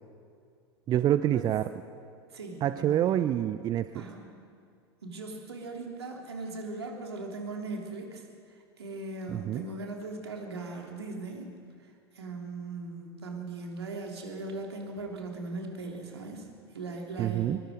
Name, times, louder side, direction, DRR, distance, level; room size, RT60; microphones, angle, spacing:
voice 1, 0.9-1.7 2.6-4.0 9.3-9.6 17.2-17.6, right 11 dB, 30° right, 13 dB, 0.6 m, -27 dB
voice 2, 2.3-3.2 3.9-4.3 5.0-11.5 11.8-16.5 16.7-17.6, right 3 dB, 75° right, 1 dB, 3.4 m, -39 dB
23.0 x 22.5 x 5.2 m, 2.3 s
figure-of-eight pair, 85°, 14 cm